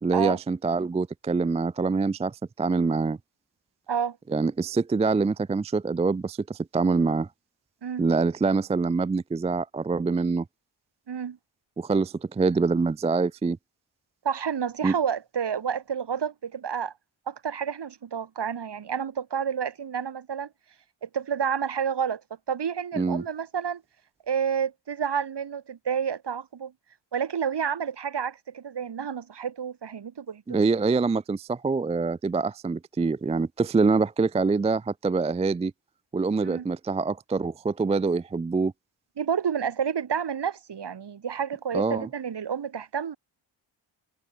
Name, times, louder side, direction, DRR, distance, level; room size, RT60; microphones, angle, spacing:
voice 1, 0.0-3.2 4.3-7.3 8.0-10.4 11.8-13.6 14.8-14.9 23.0-23.2 30.5-35.7 36.1-38.7 41.7-42.1, right 4 dB, 15° right, 0.3 m, -25 dB
voice 2, 11.1-11.4 14.2-16.9 17.3-20.5 21.0-22.2 22.5-23.8 24.3-26.7 27.1-30.6 36.4-36.7 39.2-43.2, right 7 dB, 55° right, 2.1 m, -29 dB
cardioid pair, 90°, 48 cm